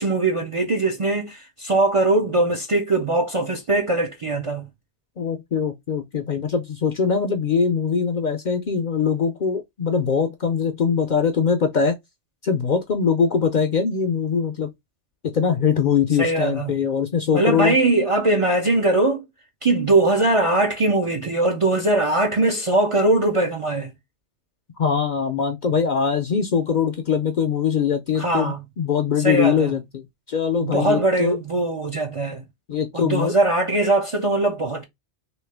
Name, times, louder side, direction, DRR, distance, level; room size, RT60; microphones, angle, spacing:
voice 1, 0.0-4.7 16.2-16.7 17.3-19.2 19.6-23.9 28.2-28.7 29.2-29.7 30.6-32.4 32.9-34.8, right 2 dB, 40° right, 0.5 m, -21 dB
voice 2, 5.2-11.9 12.4-14.7 15.2-17.8 24.8-30.0 30.3-31.4 32.7-33.3, left 6 dB, 55° left, 0.6 m, -22 dB
3.1 x 2.8 x 3.3 m
omnidirectional pair, 1.2 m